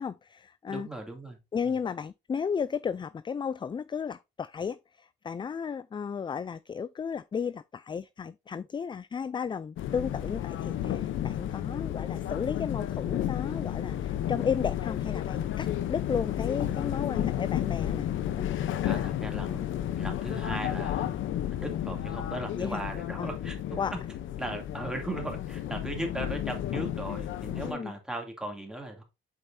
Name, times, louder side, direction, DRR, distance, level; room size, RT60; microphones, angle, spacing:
voice 1, 0.0-0.9 1.5-18.1 18.4-18.5 22.6-22.8 23.2-23.3 23.8-23.9 27.6-27.9, left 6 dB, 25° left, 0.3 m, -34 dB
voice 2, 0.6-1.4 1.6-1.8 18.8-21.1 21.5-23.6 24.4-29.0, right 1 dB, 5° right, 2.6 m, -37 dB
sound 1, 9.8-27.7, left 11 dB, 75° left, 0.8 m, -32 dB
8.0 x 5.1 x 2.7 m
cardioid pair, 90°, 20 cm